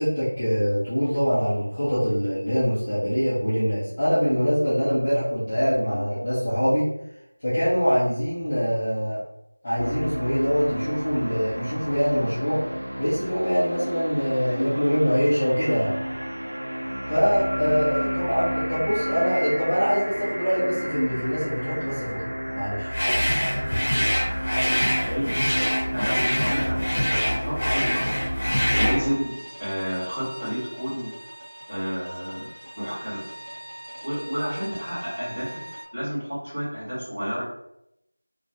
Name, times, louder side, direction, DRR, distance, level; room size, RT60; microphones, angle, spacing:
voice 1, 0.0-6.9 7.4-9.2 9.6-12.6 13.0-16.0 17.1-22.9, equal, 20° left, -14 dB, 0.6 m, -24 dB
sound 1, 9.8-29.2, equal, 85° right, 0.6 m, -32 dB
sound 2, 22.9-29.0, equal, 75° left, 0.7 m, -24 dB
voice 2, 25.0-25.4 25.9-28.0 28.7-29.3 29.6-31.1 31.7-32.5 32.7-33.2 34.0-35.6 35.9-37.4, equal, 15° right, -13 dB, 1.5 m, -30 dB
sound 3, 28.8-35.8, right 1 dB, 45° right, 0.6 m, -41 dB
2.7 x 2.2 x 2.7 m, 0.79 s
figure-of-eight pair, 175°, 0 cm